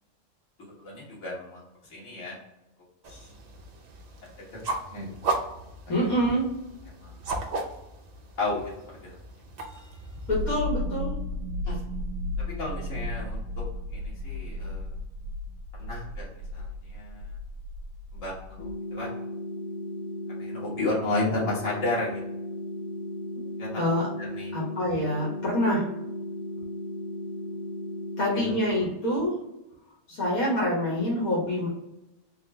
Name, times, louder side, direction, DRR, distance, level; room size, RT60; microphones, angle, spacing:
voice 1, 0.6-1.6 1.9-2.4 3.1-3.3 4.9-5.1 5.9-6.1 7.0-7.1 8.4-8.7 11.7-11.9 12.4-13.6 13.9-14.9 15.8-17.3 18.1-19.1 20.4-22.2 23.6-23.8 24.2-24.5 28.3-28.8, left 2 dB, 65° left, -6 dB, 1.8 m, -33 dB
sound 1, 3.0-10.5, right 3 dB, 85° right, 0.3 m, -36 dB
voice 2, 5.9-6.4 10.3-11.1 23.4-23.5 23.8-24.1 24.5-25.9 28.2-29.3 30.1-31.7, equal, 80° left, -5 dB, 1.7 m, -26 dB
sound 2, 10.3-18.7, left 1 dB, 60° right, 0.8 m, -34 dB
sound 3, 18.6-28.6, left 1 dB, 40° left, 0.6 m, -36 dB
4.2 x 2.4 x 3.2 m, 0.89 s
omnidirectional pair, 1.5 m